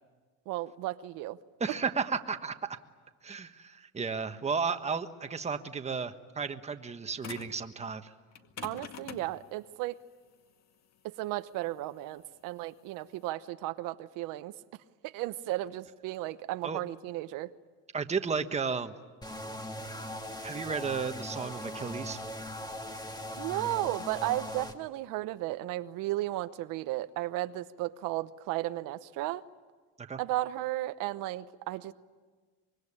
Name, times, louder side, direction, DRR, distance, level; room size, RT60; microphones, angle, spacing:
voice 1, 0.5-1.4 1.7-1.8 8.6-10.0 11.0-14.5 15.0-17.5 23.4-29.4 30.2-31.9, right 16 dB, 80° right, 12 dB, 1.0 m, -34 dB
voice 2, 1.6-2.5 3.2-8.1 16.6-16.8 17.9-18.9 20.4-22.2 30.1-30.2, right 5 dB, 20° right, 8 dB, 1.3 m, -33 dB
sound 1, 7.2-7.6 8.3-13.3, left 7 dB, 55° left, 2.1 m, -46 dB
sound 2, 19.2-24.7, equal, 10° left, 1.9 m, -40 dB
25.0 x 23.0 x 9.9 m, 1.4 s
cardioid pair, 130°, 32 cm